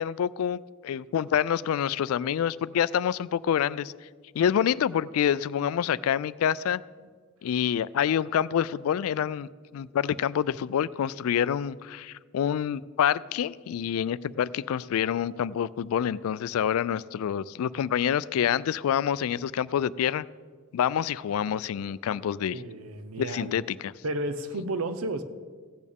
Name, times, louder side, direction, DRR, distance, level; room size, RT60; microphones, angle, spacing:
voice 1, 0.0-3.9 4.4-6.8 7.4-9.5 9.7-20.3 20.7-22.6 23.2-23.9, left 9 dB, 85° left, 19 dB, 0.3 m, -27 dB
voice 2, 22.5-23.6 24.0-25.2, right 1 dB, 85° right, 9 dB, 0.8 m, -32 dB
15.5 x 8.5 x 3.5 m, 1.5 s
head